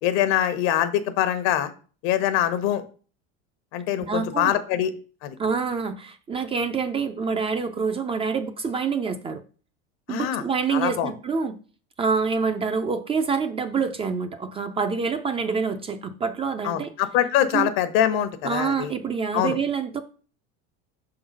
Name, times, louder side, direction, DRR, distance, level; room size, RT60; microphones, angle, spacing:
voice 1, 0.0-1.7 2.0-2.8 3.7-4.9 5.2-5.3 10.1-10.4 10.7-11.1 16.6-18.9 19.3-19.6, left 11 dB, 75° left, 1.0 m, -23 dB
voice 2, 4.1-4.5 5.4-9.4 10.1-11.6 12.0-16.9 17.5-17.7 18.4-20.0, right 5 dB, 20° right, 0.4 m, -26 dB
5.9 x 3.9 x 5.2 m
cardioid pair, 140°, 32 cm